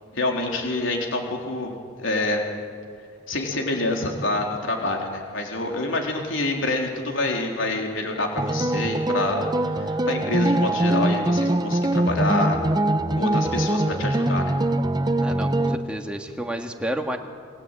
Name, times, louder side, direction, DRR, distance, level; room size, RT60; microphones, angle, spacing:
voice 1, 0.1-2.4 3.3-12.6 13.2-14.5, left 2 dB, 75° left, 1 dB, 3.8 m, -27 dB
sound 1, 8.4-15.8, right 1 dB, 20° right, 0.9 m, -23 dB
voice 2, 15.2-17.2, right 1 dB, 5° right, 3 dB, 2.0 m, -30 dB
29.5 x 19.5 x 9.2 m, 2.3 s
head